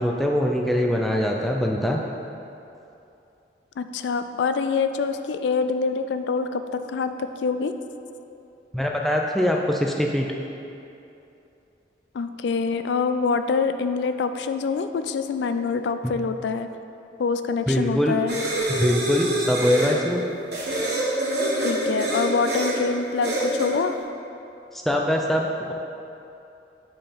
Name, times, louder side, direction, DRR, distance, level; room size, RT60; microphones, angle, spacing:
voice 1, 0.0-2.0 8.7-10.3 16.0-16.2 17.7-18.2 18.7-20.2 24.7-25.7, equal, ahead, 0 dB, 0.4 m, -23 dB
voice 2, 3.8-7.7 12.1-16.7 17.2-18.4 21.6-24.0, left 5 dB, 80° left, 9 dB, 0.3 m, -25 dB
sound 1, 18.3-19.9 20.5-22.8 23.2-23.7, right 1 dB, 70° right, 1.3 m, -26 dB
5.3 x 4.5 x 5.6 m, 2.8 s
head